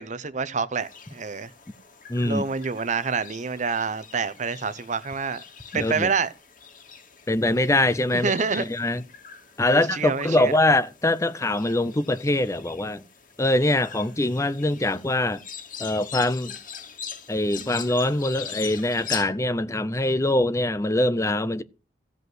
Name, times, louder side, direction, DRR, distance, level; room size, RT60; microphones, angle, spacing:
voice 1, 0.0-1.5 2.2-5.4 5.7-6.3 8.2-8.7 9.7-10.6, right 5 dB, 45° right, 0.8 m, -27 dB
sound 1, 0.8-19.2, left 7 dB, 50° left, 2.3 m, -42 dB
voice 2, 2.1-2.5 5.7-6.1 7.3-9.0 9.6-13.0 13.4-15.4 15.8-16.6 17.3-21.6, left 1 dB, 15° left, 0.6 m, -23 dB
15.5 x 5.3 x 7.9 m
head